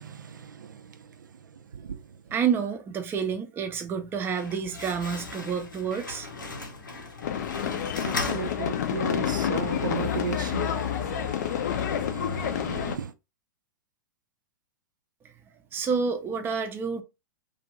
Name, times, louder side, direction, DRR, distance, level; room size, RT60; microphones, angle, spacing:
voice 1, 0.0-2.1 8.0-13.1, right 7 dB, 75° right, 0.4 m, -36 dB
voice 2, 2.3-6.3 15.7-17.0, right 6 dB, 20° right, 0.5 m, -29 dB
Slam, 4.1-9.2, left 3 dB, 85° left, 0.8 m, -37 dB
sound 1, 7.2-13.0, left 9 dB, 60° left, 0.5 m, -29 dB
2.5 x 2.3 x 3.0 m
figure-of-eight pair, 105°, 10 cm